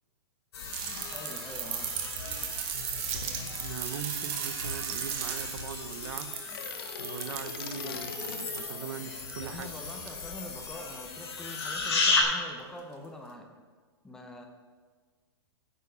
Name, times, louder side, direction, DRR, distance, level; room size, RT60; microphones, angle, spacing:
sound 1, 0.5-12.2, left 4 dB, 80° left, 3.4 m, -35 dB
sound 2, 0.7-11.1 12.5-12.6, right 9 dB, 25° right, 0.9 m, -38 dB
voice 1, 1.1-2.0 9.4-13.5 14.0-14.5, left 1 dB, 5° left, 3 dB, 0.7 m, -44 dB
voice 2, 3.1-6.4 7.0-9.7, right 8 dB, 70° right, 12 dB, 0.7 m, -41 dB
sound 3, 6.3-8.7, left 7 dB, 60° left, 1.0 m, -43 dB
10.0 x 7.3 x 5.5 m, 1.5 s
supercardioid pair, 175°, 14 cm